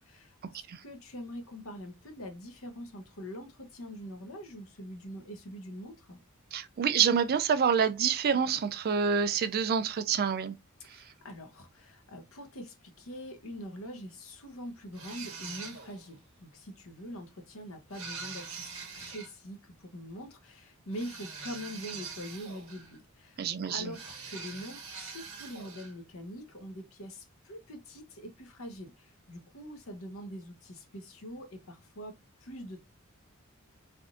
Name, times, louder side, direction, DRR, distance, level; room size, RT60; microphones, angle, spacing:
voice 1, 0.0-6.2 10.8-32.1 32.4-32.9, equal, 70° left, 0.9 m, -44 dB
voice 2, 6.5-10.6 10.9-11.0 23.4-23.9, right 7 dB, 45° right, 0.3 m, -27 dB
sound 1, 14.9-16.1 17.9-19.3 20.9-23.0 23.9-25.9, right 5 dB, 65° right, 1.2 m, -43 dB
3.4 x 2.6 x 2.4 m
head